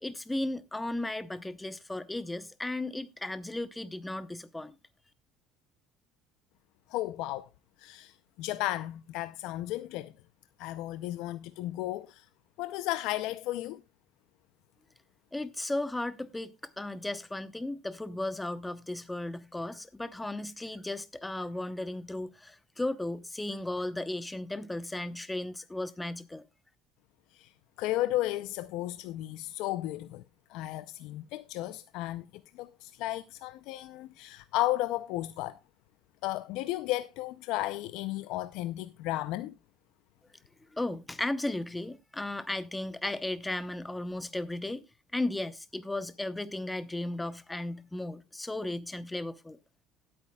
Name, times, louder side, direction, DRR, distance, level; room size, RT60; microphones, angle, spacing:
voice 1, 0.0-4.8 15.3-26.4 40.7-44.8 45.1-49.6, left 2 dB, 10° left, 0.8 m, -35 dB
voice 2, 6.9-7.5 7.8-10.1 10.6-12.3 12.6-13.8 27.3-27.5 27.8-30.2 30.5-32.2 32.5-35.6 36.2-39.5, left 16 dB, 70° left, 0.5 m, -34 dB
18.0 x 8.7 x 2.3 m
cardioid pair, 125°, 0 cm